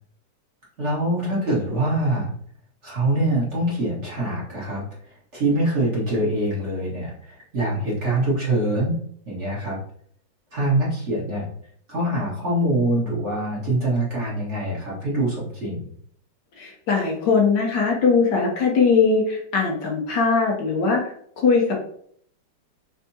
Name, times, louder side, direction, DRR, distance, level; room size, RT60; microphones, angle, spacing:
voice 1, 0.8-2.3 2.8-4.8 5.3-9.0 9.3-9.8 10.5-11.5 11.9-15.9, right 1 dB, 35° right, -7 dB, 1.9 m, -24 dB
voice 2, 16.6-21.0 21.4-21.9, left 5 dB, 65° left, 0 dB, 1.4 m, -20 dB
4.4 x 3.4 x 2.7 m, 0.62 s
omnidirectional pair, 2.1 m